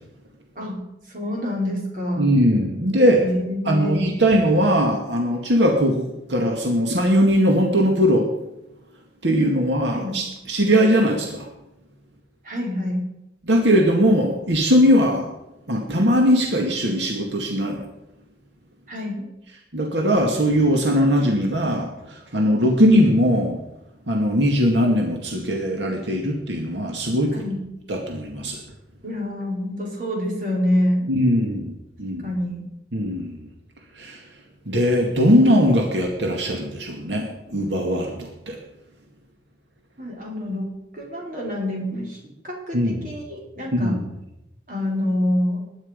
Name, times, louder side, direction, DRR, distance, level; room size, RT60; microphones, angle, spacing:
voice 1, 1.1-2.3 3.2-4.0 9.9-10.1 12.4-13.0 18.9-19.3 27.3-27.6 29.0-31.1 32.2-32.7 40.0-44.0 44.7-45.6, left 1 dB, 50° right, -2 dB, 4.8 m, -26 dB
voice 2, 2.2-3.2 3.7-8.3 9.2-11.5 13.5-15.3 15.7-17.9 19.7-23.6 24.1-27.3 27.9-28.6 31.1-32.3 32.9-33.4 34.0-34.2 34.7-38.6 42.7-43.1 43.7-44.0, equal, 90° right, 1 dB, 2.2 m, -20 dB
20.5 x 10.5 x 5.3 m, 0.89 s
head